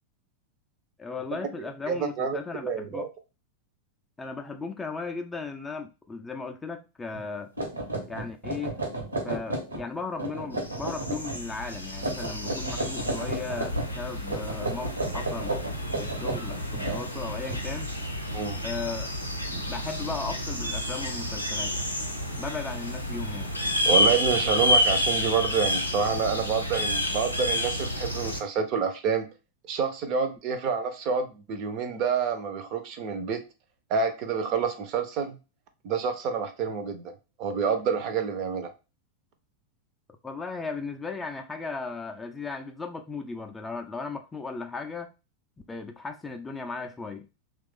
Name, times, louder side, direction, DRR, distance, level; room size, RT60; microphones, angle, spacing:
voice 1, 1.0-3.1 4.2-7.5 8.1-8.8 9.2-15.6 16.0-17.9 18.6-19.1 19.5-21.8 22.4-23.5 40.2-45.1 45.7-47.3, left 4 dB, 15° left, 5 dB, 0.4 m, -36 dB
voice 2, 1.6-3.1 18.3-18.6 23.9-29.3 29.7-33.4 33.9-35.4 35.8-37.1 37.4-38.7, right 6 dB, 40° right, 8 dB, 0.6 m, -28 dB
sound 1, 7.1-7.2 7.6-9.9 10.1-11.4 12.0-13.9 14.3-17.5, right 2 dB, 80° right, 1.0 m, -33 dB
sound 2, 10.5-28.4, left 1 dB, 90° left, 0.6 m, -29 dB
3.0 x 2.4 x 3.6 m, 0.29 s
figure-of-eight pair, 90°, 0 cm